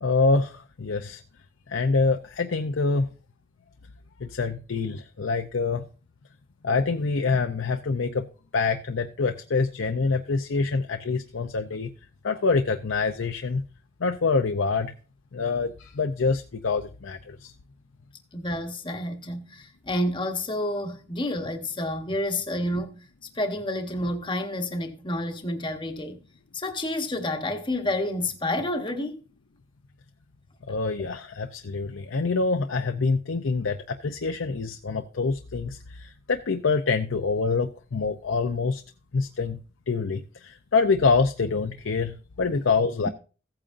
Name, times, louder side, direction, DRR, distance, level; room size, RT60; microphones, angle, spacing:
voice 1, 0.0-1.2 1.7-3.1 4.2-5.8 6.6-8.3 8.5-11.9 12.2-13.6 14.0-14.9 15.3-17.5 30.7-38.8 39.1-39.6 39.9-43.1, left 4 dB, 75° left, 0.6 m, -26 dB
voice 2, 18.3-23.1 23.3-26.2 26.5-29.2 43.0-43.1, left 1 dB, 25° left, 1.1 m, -29 dB
15.5 x 8.8 x 2.5 m
head